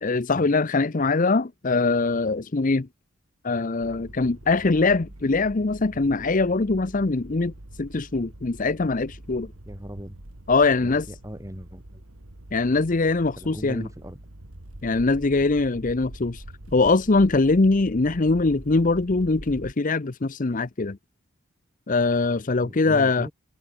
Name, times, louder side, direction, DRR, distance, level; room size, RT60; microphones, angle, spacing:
voice 1, 0.0-2.9 3.4-7.5 7.8-9.5 10.5-11.0 12.5-13.8 14.8-16.4 16.7-21.0 21.9-23.3, left 3 dB, 40° left, 0.7 m, -22 dB
sound 1, 3.8-19.7, right 1 dB, 80° right, 2.4 m, -44 dB
voice 2, 9.6-10.2 10.8-12.0 13.4-14.2 15.3-15.5 22.5-23.3, equal, 15° right, 4.9 m, -39 dB
head